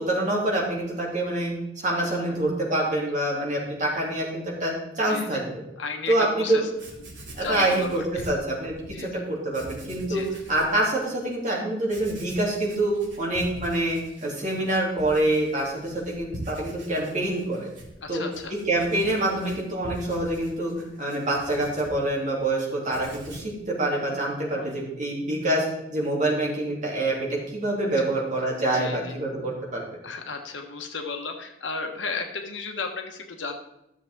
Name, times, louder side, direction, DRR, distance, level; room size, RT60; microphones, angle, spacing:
voice 1, 0.0-1.5 1.8-5.5 6.1-6.6 7.3-17.7 18.1-18.2 18.7-29.8, right 1 dB, 40° right, -3 dB, 3.0 m, -26 dB
voice 2, 5.0-5.4 5.8-6.7 7.0-7.1 7.4-8.2 8.9-9.2 10.1-10.3 18.0-18.6 24.5-24.8 28.0-28.1 28.6-29.1 30.0-33.6, left 4 dB, 70° left, 4 dB, 1.3 m, -34 dB
Writing, 6.5-6.6 6.7-8.9 9.5-10.8 11.2-11.3 11.8-22.5 22.8-23.6, right 1 dB, 70° right, 3.0 m, -44 dB
13.5 x 7.1 x 3.7 m, 0.86 s
head